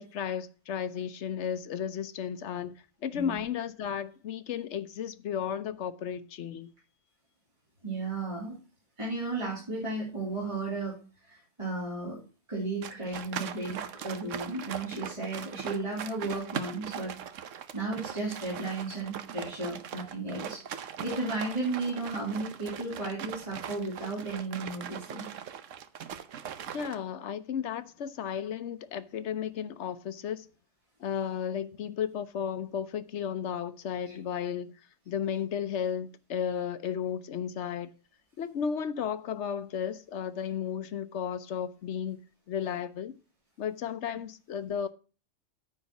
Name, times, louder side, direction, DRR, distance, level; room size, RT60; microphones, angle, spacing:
voice 1, 0.0-2.7 3.0-6.7 26.7-30.5 31.0-34.7 35.1-37.9 38.4-42.2 42.5-43.1 43.6-44.9, left 8 dB, 60° left, 1.0 m, -34 dB
voice 2, 7.8-8.6 9.0-11.0 11.3-12.2 12.5-17.1 17.7-25.3 34.1-34.2, right 3 dB, 20° right, 2.8 m, -34 dB
sound 1, 12.8-27.0, right 8 dB, 70° right, 1.1 m, -40 dB
9.4 x 4.8 x 7.1 m
omnidirectional pair, 1.4 m